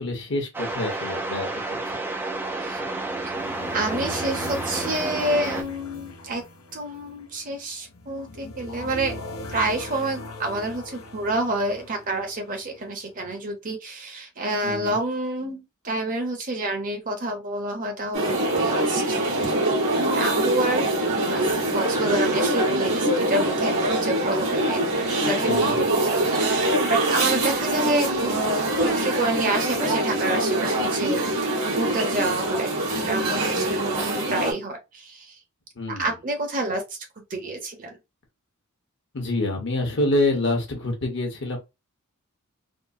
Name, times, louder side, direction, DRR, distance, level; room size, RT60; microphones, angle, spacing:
voice 1, 0.0-2.0 14.6-15.0 25.4-25.7 35.8-36.1 39.1-41.6, left 2 dB, 55° left, 1.0 m, -27 dB
sound 1, 0.5-5.6, right 2 dB, 10° right, 0.3 m, -30 dB
sound 2, 2.8-12.9, left 1 dB, 80° left, 0.7 m, -39 dB
voice 2, 3.7-6.4 6.7-9.2 9.5-19.2 20.1-24.8 25.2-25.8 26.1-31.2 31.6-35.4 35.9-38.0, right 2 dB, 35° right, 0.8 m, -28 dB
sound 3, 18.1-34.5, right 1 dB, 90° right, 1.6 m, -24 dB
3.6 x 2.0 x 2.6 m
head